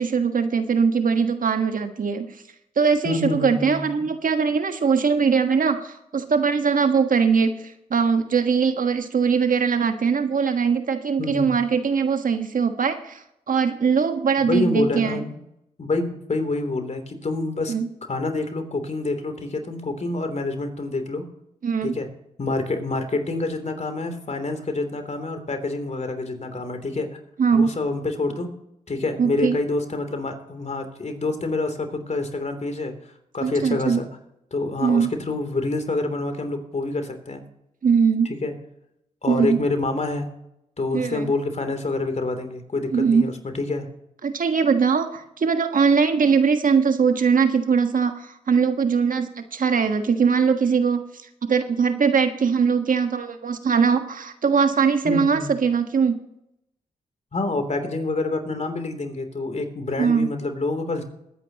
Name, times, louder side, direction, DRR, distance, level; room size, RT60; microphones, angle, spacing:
voice 1, 0.0-2.3 2.8-13.2 13.5-15.2 17.7-17.9 21.6-22.0 27.4-27.8 29.2-29.6 33.4-34.0 34.8-35.1 37.8-38.3 39.3-39.6 40.9-41.3 42.9-43.3 44.2-51.0 51.5-56.2 60.0-60.3, right 6 dB, 60° right, 8 dB, 1.4 m, -21 dB
voice 2, 3.0-3.9 11.2-11.6 14.4-15.2 15.8-17.7 18.1-21.3 21.8-22.1 22.4-27.1 27.5-28.6 28.9-32.9 33.3-34.1 34.5-37.4 38.4-38.5 39.2-40.3 40.8-43.9 55.0-55.5 57.3-61.0, left 2 dB, 45° left, 6 dB, 3.2 m, -27 dB
21.0 x 9.7 x 2.9 m, 0.81 s
supercardioid pair, 45°, 16 cm